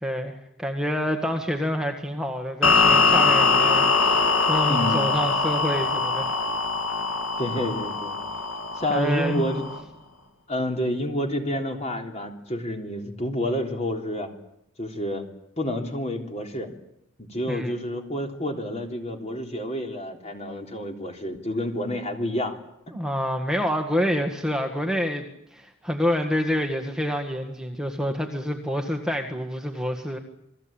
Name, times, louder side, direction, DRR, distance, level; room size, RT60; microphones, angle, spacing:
voice 1, 0.0-6.4 8.9-9.7 17.5-17.8 22.9-25.2 25.5-30.2, equal, 5° right, 4 dB, 1.8 m, -27 dB
sound 1, 2.6-9.8, left 4 dB, 75° left, 2.4 m, -22 dB
voice 2, 4.7-5.1 7.4-8.2 8.7-9.6 10.5-14.3 14.8-15.2 15.6-16.7 17.2-22.6, left 1 dB, 30° left, 4 dB, 3.5 m, -29 dB
28.5 x 21.0 x 8.9 m, 0.77 s
head